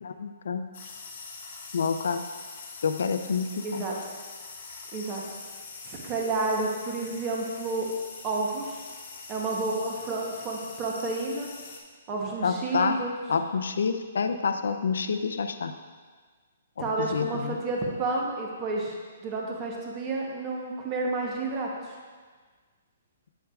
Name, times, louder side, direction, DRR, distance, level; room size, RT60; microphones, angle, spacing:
voice 1, 0.0-0.7 1.7-2.2 2.8-3.8 12.4-13.0 13.3-15.7 16.8-17.6, left 5 dB, 75° left, 8 dB, 0.5 m, -28 dB
sound 1, 0.7-11.8, left 4 dB, 40° left, 1.0 m, -43 dB
voice 2, 3.6-3.9 4.9-5.2 5.8-7.9 8.2-8.8 9.3-11.5 12.1-13.2 16.8-18.9 19.2-21.7, right 3 dB, 15° right, -1 dB, 0.9 m, -30 dB
8.4 x 7.8 x 2.4 m, 1.5 s
hypercardioid pair, 175°, 0 cm